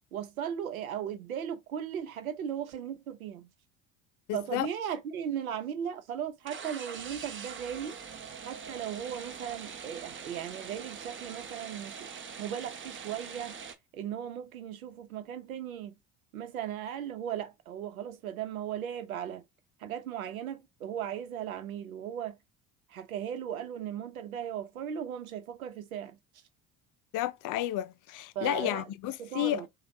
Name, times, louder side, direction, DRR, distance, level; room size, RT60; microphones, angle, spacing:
voice 1, 0.1-3.5 4.3-8.0 8.4-12.1 12.4-13.5 13.9-16.0 16.3-19.5 19.8-22.4 22.9-26.2 28.3-28.9 29.2-29.7, right 9 dB, 85° right, 0.9 m, -37 dB
voice 2, 4.3-4.7 27.1-29.6, left 14 dB, 50° left, 0.6 m, -31 dB
sound 1, 6.4-13.7, right 6 dB, 30° right, 1.0 m, -43 dB
5.1 x 2.5 x 2.7 m
hypercardioid pair, 65°, 41 cm